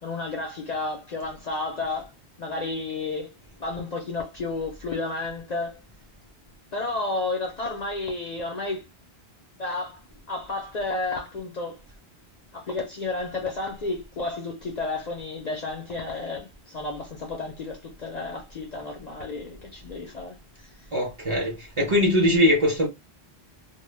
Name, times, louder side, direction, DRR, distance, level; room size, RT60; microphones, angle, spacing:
voice 1, 0.0-2.1 2.4-3.3 3.6-5.8 6.7-8.8 9.6-10.0 10.3-11.8 12.5-20.4, left 3 dB, 50° left, 0.6 m, -31 dB
voice 2, 20.9-22.9, left 1 dB, 35° right, 0.7 m, -21 dB
2.1 x 2.1 x 3.2 m
omnidirectional pair, 1.1 m